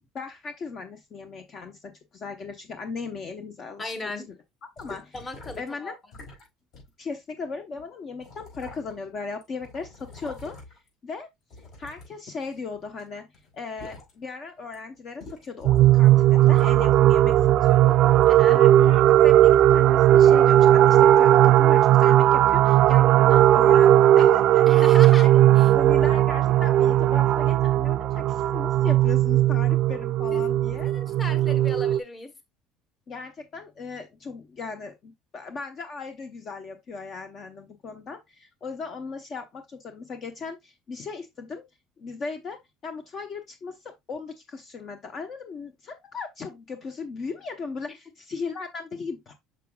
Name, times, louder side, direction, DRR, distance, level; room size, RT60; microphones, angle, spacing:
voice 1, 0.1-4.1 4.8-5.2 5.6-5.9 7.0-10.6 11.0-11.3 11.8-13.2 13.5-18.0 18.4-25.3 25.7-30.9 33.1-41.6 42.0-49.3, left 4 dB, 40° left, 1.0 m, -37 dB
voice 2, 3.8-4.3 5.1-5.9 18.3-18.6 24.7-25.3 25.6-25.7 30.3-30.4 30.9-32.3, left 2 dB, 20° left, 1.3 m, -36 dB
sound 1, 4.8-5.7 6.1-6.5 6.7-6.9 7.8-7.9 8.2-9.1 9.4-10.9 11.5-13.0 13.3-14.1 14.6-14.7 15.2-15.8 16.1-17.2 17.6-18.2 18.9-19.0, left 3 dB, 55° left, 5.0 m, -44 dB
sound 2, 15.6-32.0, right 13 dB, 55° right, 0.4 m, -17 dB
6.6 x 6.1 x 2.3 m
cardioid pair, 125°, 0 cm